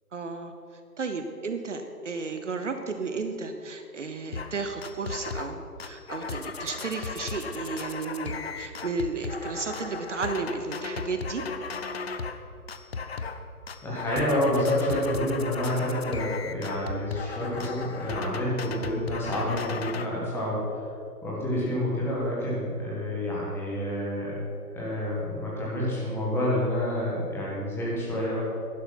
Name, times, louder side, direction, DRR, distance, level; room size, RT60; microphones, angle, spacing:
voice 1, 0.1-0.5 1.0-11.4, right 4 dB, 50° right, 7 dB, 1.0 m, -33 dB
sound 1, 4.3-4.5 4.8-5.5 5.8-12.4 12.7-13.4 13.7-20.1, left 4 dB, 40° left, 0.7 m, -36 dB
voice 2, 13.8-20.6 21.2-24.4 24.7-28.4, left 1 dB, 5° left, -6 dB, 1.5 m, -28 dB
11.5 x 11.0 x 5.9 m, 2.6 s
figure-of-eight pair, 145°, 47 cm